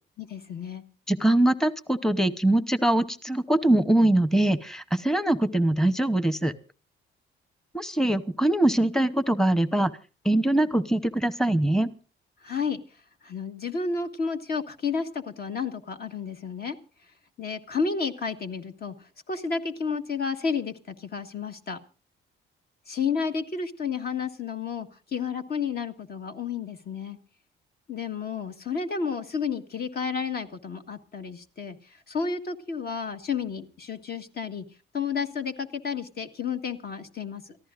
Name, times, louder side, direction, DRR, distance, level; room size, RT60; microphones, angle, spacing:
voice 1, 0.2-0.8 12.4-12.8 13.2-16.8 17.4-21.8 22.9-27.2 27.9-34.6 34.9-37.6, left 5 dB, 50° left, 7 dB, 1.5 m, -31 dB
voice 2, 1.1-6.5 7.7-9.9 10.2-11.9, right 1 dB, 5° left, 14 dB, 0.9 m, -23 dB
29.0 x 14.5 x 2.5 m, 0.35 s
cardioid pair, 90°, 20 cm